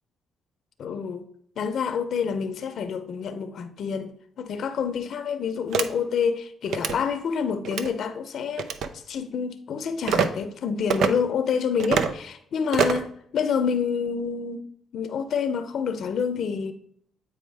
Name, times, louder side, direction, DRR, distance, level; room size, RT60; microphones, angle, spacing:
voice 1, 0.8-1.3 1.6-14.7 14.9-16.7, left 6 dB, 65° left, 0.6 m, -28 dB
sound 1, 5.7-5.9 6.7-7.0 7.6-7.9 8.6-8.9 10.1-10.3 10.9-11.1 11.8-12.1 12.7-13.1, right 6 dB, 75° right, 0.6 m, -24 dB
8.6 x 4.9 x 3.4 m
cardioid pair, 90°, 0 cm